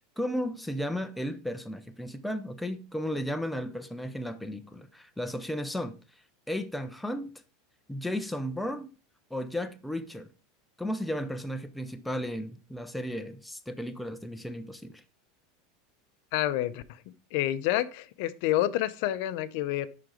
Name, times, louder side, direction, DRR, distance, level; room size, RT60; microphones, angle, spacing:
voice 1, 0.2-5.9 6.5-7.3 7.9-8.9 9.3-10.3 10.8-15.0, equal, ahead, 0.6 m, -34 dB
voice 2, 16.3-17.0 17.3-19.9, left 14 dB, 60° left, 0.6 m, -28 dB
11.0 x 3.9 x 4.9 m
supercardioid pair, 155°, 0 cm